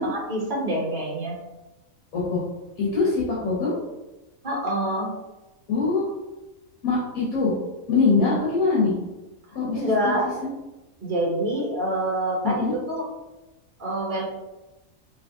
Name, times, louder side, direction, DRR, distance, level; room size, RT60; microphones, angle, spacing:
voice 1, 0.0-1.4 4.4-5.1 9.7-10.3 11.0-13.1 13.8-14.3, right 1 dB, 40° right, -3 dB, 1.2 m, -26 dB
voice 2, 2.8-3.7 5.7-6.1 6.8-7.5 7.9-8.9 9.5-10.2 10.4-10.5 12.4-12.7, left 4 dB, 90° left, -7 dB, 1.6 m, -23 dB
5.2 x 2.9 x 2.8 m, 1.0 s
omnidirectional pair, 1.4 m